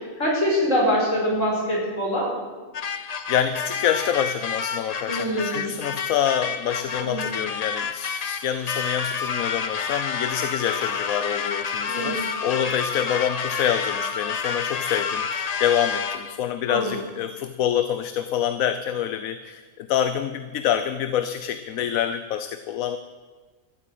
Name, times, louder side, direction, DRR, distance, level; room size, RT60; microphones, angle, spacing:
voice 1, 0.2-2.3 5.1-5.7 7.0-7.3 11.9-12.2 16.7-16.9, equal, 65° left, -3 dB, 4.9 m, -24 dB
sound 1, 2.7-16.4, left 6 dB, 45° left, 0.5 m, -29 dB
voice 2, 3.3-23.0, left 9 dB, 85° left, 11 dB, 1.1 m, -26 dB
13.5 x 8.6 x 9.1 m, 1.4 s
omnidirectional pair, 1.4 m